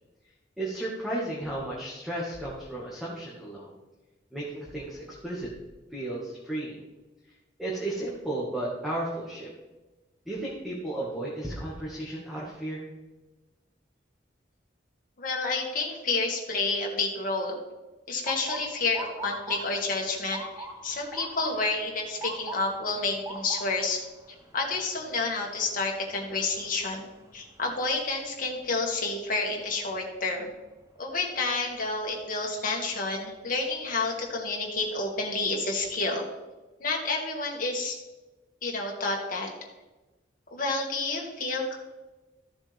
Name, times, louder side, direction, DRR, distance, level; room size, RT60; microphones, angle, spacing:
voice 1, 0.6-3.7 4.3-5.5 5.9-6.8 7.6-9.5 10.2-12.8, right 1 dB, ahead, -6 dB, 1.8 m, -34 dB
voice 2, 15.2-17.6 18.1-24.0 24.5-30.5 31.0-36.3 36.8-38.0 38.6-39.5 40.5-41.8, left 3 dB, 50° left, 0 dB, 2.1 m, -29 dB
Motor vehicle (road) / Siren, 18.3-30.2 30.6-31.0 31.8-32.1 34.0-34.2 34.8-34.9 35.3-36.0, right 2 dB, 20° right, 1.1 m, -43 dB
14.5 x 7.1 x 3.5 m, 1.1 s
head